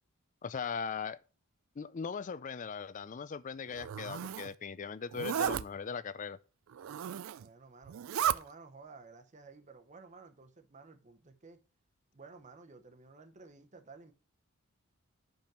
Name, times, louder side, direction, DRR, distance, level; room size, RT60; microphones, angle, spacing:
voice 1, 0.4-1.2 1.8-6.4, left 6 dB, 35° left, 0.4 m, -39 dB
Zipper (clothing), 3.7-4.5 5.1-5.6 6.7-7.4 7.9-8.4, right 9 dB, 65° right, 0.3 m, -34 dB
voice 2, 7.4-7.9 8.2-11.6 12.1-14.1, right 4 dB, 35° right, 0.8 m, -54 dB
5.4 x 5.2 x 5.9 m
head